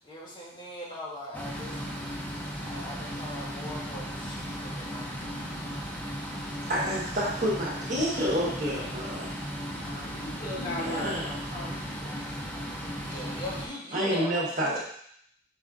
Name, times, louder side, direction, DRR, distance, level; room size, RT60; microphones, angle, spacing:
voice 1, 0.0-1.9 2.3-5.5 5.7-6.1 13.0-14.8, left 1 dB, 25° left, -5 dB, 1.1 m, -41 dB
sound 1, 1.3-13.7, equal, 10° left, 0.7 m, -36 dB
voice 2, 6.7-9.3 10.6-11.3 13.9-14.8, equal, 45° right, -5 dB, 1.3 m, -29 dB
voice 3, 9.7-11.7, left 1 dB, 50° left, -3 dB, 1.0 m, -37 dB
5.0 x 4.1 x 2.5 m, 0.67 s
head